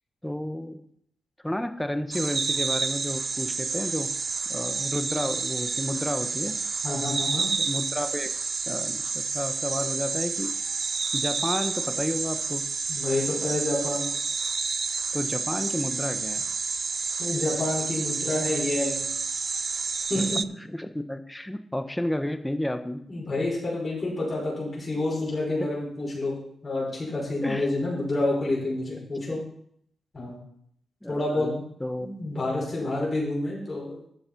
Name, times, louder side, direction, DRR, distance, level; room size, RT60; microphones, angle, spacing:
voice 1, 0.2-0.8 1.4-4.1 4.5-6.5 7.6-8.3 8.7-10.6 11.1-12.7 15.1-16.4 20.1-20.3 20.6-23.0 25.6-25.7 27.4-27.7 29.3-29.4 31.0-32.1, left 1 dB, 10° left, 9 dB, 1.1 m, -31 dB
sound 1, 2.1-20.4, right 4 dB, 50° right, 0.4 m, -29 dB
voice 2, 6.8-7.5 12.9-14.1 17.2-19.0 20.1-20.4 23.1-26.3 26.6-29.4 30.1-30.4 31.1-31.6 32.0-33.9, left 2 dB, 40° left, -5 dB, 5.1 m, -28 dB
10.5 x 6.9 x 5.3 m, 0.69 s
cardioid pair, 55°, 0 cm